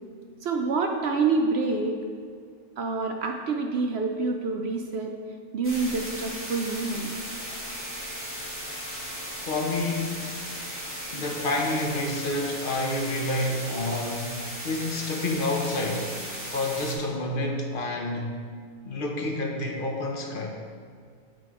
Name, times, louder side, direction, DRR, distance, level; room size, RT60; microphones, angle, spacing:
voice 1, 0.4-2.0 2.8-5.1 5.5-7.1, right 4 dB, 60° right, 3 dB, 0.8 m, -27 dB
sound 1, 5.6-16.9, equal, 10° right, 1.5 m, -36 dB
voice 2, 9.4-10.3 11.1-16.1 16.5-18.4 18.8-20.6, left 2 dB, 45° left, 1 dB, 0.9 m, -29 dB
7.6 x 4.4 x 4.7 m, 2.1 s
omnidirectional pair, 1.4 m